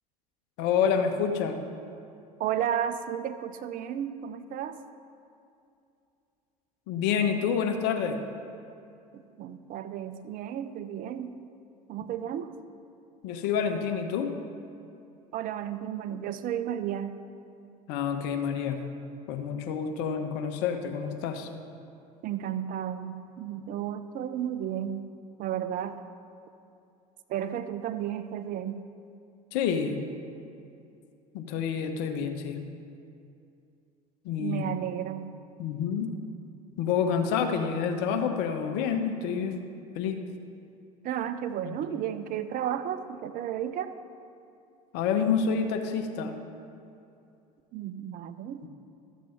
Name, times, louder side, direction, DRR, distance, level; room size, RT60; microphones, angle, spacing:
voice 1, 0.6-1.6 6.9-8.2 13.2-14.4 17.9-18.8 19.3-21.5 29.5-30.0 31.3-32.6 34.2-34.7 35.6-36.1 36.8-39.6 39.9-40.2 41.6-41.8 44.9-46.4 48.6-48.7, left 7 dB, 60° left, 6 dB, 1.0 m, -28 dB
voice 2, 2.4-4.8 9.1-11.3 11.9-12.6 15.3-17.1 22.2-25.1 25.4-26.0 27.3-28.9 34.4-35.4 41.0-43.9 47.7-48.7, right 10 dB, 45° right, 11 dB, 0.6 m, -33 dB
13.0 x 7.3 x 4.4 m, 2.6 s
hypercardioid pair, 75°, 20 cm